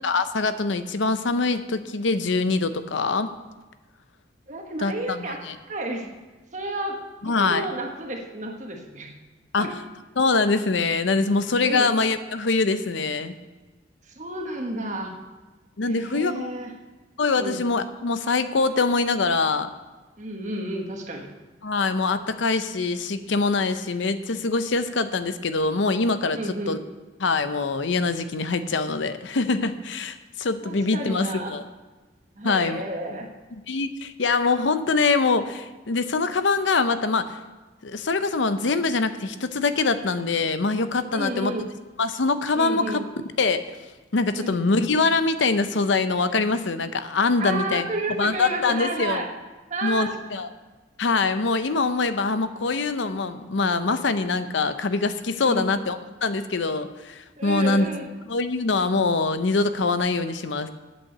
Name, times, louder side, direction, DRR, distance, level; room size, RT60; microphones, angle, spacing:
voice 1, 0.0-3.3 4.8-5.2 7.2-7.6 9.5-9.7 10.2-13.3 15.8-16.5 17.2-19.7 21.6-26.8 27.2-31.6 32.4-32.8 33.7-37.4 37.8-41.5 42.0-43.0 43.4-43.6 44.1-47.8 48.2-49.2 49.8-50.5 51.0-57.9 58.3-60.7, left 3 dB, 75° left, 11 dB, 0.7 m, -24 dB
voice 2, 4.5-5.4 5.7-6.1 6.5-7.0 7.2-9.1 9.6-9.7 11.6-11.9 14.0-15.1 15.8-16.7 17.4-17.6 20.2-21.3 26.3-26.8 30.6-31.5 32.4-33.3 41.1-41.7 42.5-43.0 44.3-44.6 47.4-49.3 49.7-50.1 55.4-55.7 57.4-58.1, right 1 dB, 40° right, 1 dB, 1.3 m, -31 dB
8.6 x 8.5 x 6.6 m, 1.2 s
head